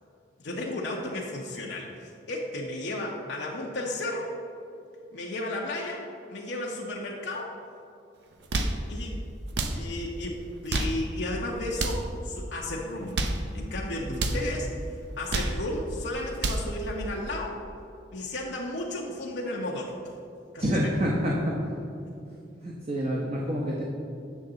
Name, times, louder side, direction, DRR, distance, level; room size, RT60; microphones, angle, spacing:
voice 1, 0.4-4.3 5.1-6.0 6.3-7.5 8.5-9.2 9.7-10.4 10.6-13.2 13.5-17.5 18.1-19.9 20.5-20.9, left 1 dB, 70° left, -3 dB, 0.8 m, -34 dB
sound 1, 8.3-8.8 9.5-9.8 10.5-11.0 11.7-12.1 12.9-13.4 14.1-14.4 15.1-15.6 16.2-16.7, right 2 dB, 70° right, 0.6 m, -29 dB
voice 2, 14.1-14.4 20.6-21.5 22.6-23.8, equal, 35° right, -3 dB, 0.8 m, -28 dB
8.3 x 6.4 x 3.8 m, 2.6 s
head